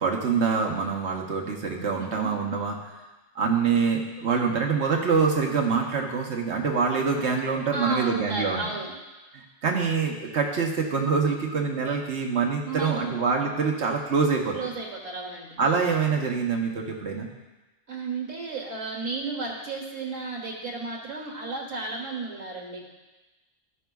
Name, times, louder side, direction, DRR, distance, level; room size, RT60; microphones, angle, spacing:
voice 1, 0.0-2.8 3.4-8.6 9.3-14.6 15.6-17.3, right 5 dB, 60° right, 0 dB, 1.2 m, -25 dB
voice 2, 2.0-2.3 7.7-8.9 12.7-13.0 14.5-15.6 17.9-22.8, right 3 dB, 80° right, -2 dB, 1.8 m, -33 dB
13.5 x 5.6 x 2.3 m, 1.1 s
omnidirectional pair, 1.3 m